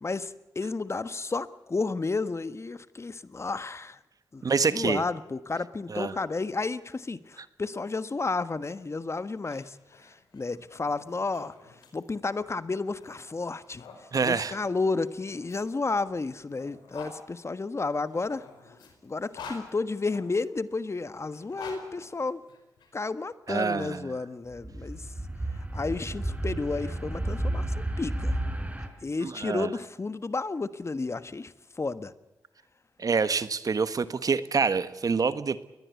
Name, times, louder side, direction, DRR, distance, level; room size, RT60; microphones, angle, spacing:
voice 1, 0.0-4.0 4.3-9.8 10.0-11.5 11.9-13.8 14.2-18.4 19.0-22.4 22.9-25.0 25.7-28.4 29.0-31.5 31.8-32.1, left 3 dB, 40° left, 13 dB, 1.3 m, -32 dB
voice 2, 4.4-5.0 5.9-6.1 14.1-14.6 23.5-24.1 29.2-29.7 33.0-35.6, right 5 dB, 55° right, 13 dB, 1.4 m, -26 dB
sound 1, 9.3-14.0 15.0-17.2 18.1-20.4 21.2-22.9, left 5 dB, 85° left, 4.7 m, -48 dB
sound 2, 24.5-28.9, right 1 dB, 20° right, 4.2 m, -32 dB
21.5 x 19.5 x 8.3 m, 0.99 s
supercardioid pair, 45°, 7 cm